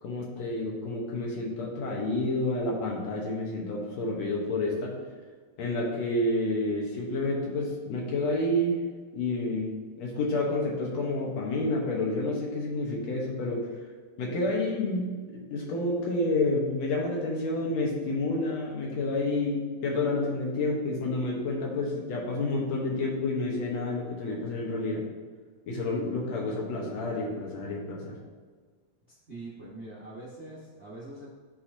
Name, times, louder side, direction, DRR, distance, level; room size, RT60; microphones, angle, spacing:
voice 1, 0.0-5.0 5.6-8.8 9.1-9.7 10.0-13.7 14.2-25.0 25.7-28.1, left 2 dB, 70° left, -2 dB, 2.2 m, -29 dB
voice 2, 29.1-31.3, right 2 dB, 70° right, -7 dB, 0.6 m, -43 dB
11.5 x 4.4 x 2.7 m, 1.5 s
omnidirectional pair, 3.3 m